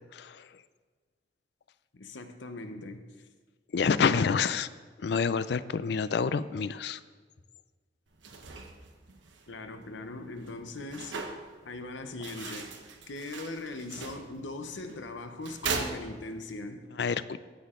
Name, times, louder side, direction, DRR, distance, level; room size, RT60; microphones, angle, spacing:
voice 1, 0.1-0.5 3.7-4.7 5.0-7.0 12.4-12.5 17.0-17.4, left 5 dB, 65° left, 0.4 m, -28 dB
voice 2, 1.9-3.1 4.0-4.4 9.5-11.2 11.6-12.8 13.1-16.8, left 2 dB, 85° left, 0.9 m, -40 dB
sound 1, 8.1-16.6, right 4 dB, 85° right, 1.1 m, -41 dB
16.5 x 6.4 x 3.7 m
head